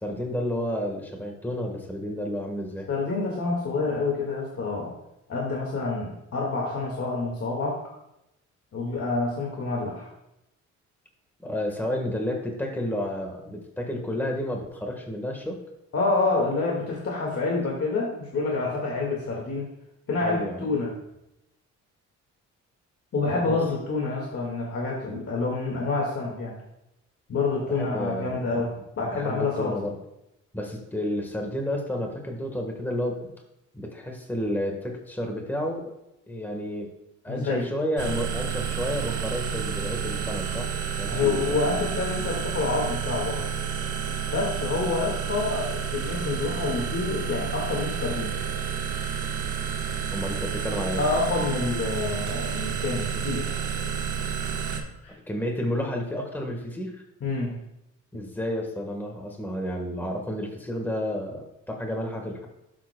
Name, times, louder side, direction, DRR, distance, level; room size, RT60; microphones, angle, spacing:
voice 1, 0.0-2.9 11.4-15.6 20.2-20.7 23.4-23.6 27.7-28.5 29.0-30.0 30.5-33.3 33.7-35.8 36.3-36.9 37.2-40.7 41.0-41.6 50.1-51.0 55.3-57.0 58.1-62.5, equal, 5° left, 2 dB, 1.5 m, -31 dB
voice 2, 2.9-4.9 5.3-7.8 8.7-10.1 15.9-19.7 20.1-20.9 23.1-26.5 27.3-29.8 37.3-37.7 41.1-43.5 44.3-48.3 50.9-53.5 55.0-55.1 57.2-57.6, left 3 dB, 50° left, -2 dB, 1.9 m, -27 dB
sound 1, 38.0-54.8, right 7 dB, 75° right, 1.4 m, -30 dB
12.0 x 7.4 x 2.3 m, 0.86 s
cardioid pair, 90°, 30 cm